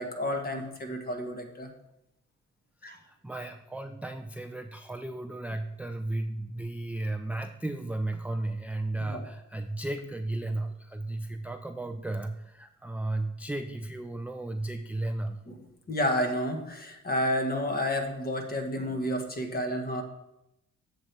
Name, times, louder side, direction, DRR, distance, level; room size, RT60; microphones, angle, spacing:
voice 1, 0.0-1.7 2.8-3.0 9.0-9.2 15.5-15.6 15.9-20.0, left 1 dB, 30° left, 4 dB, 1.6 m, -30 dB
voice 2, 2.8-15.4, right 2 dB, 5° right, 5 dB, 0.4 m, -34 dB
7.4 x 6.9 x 4.6 m, 0.86 s
cardioid pair, 90°, 30 cm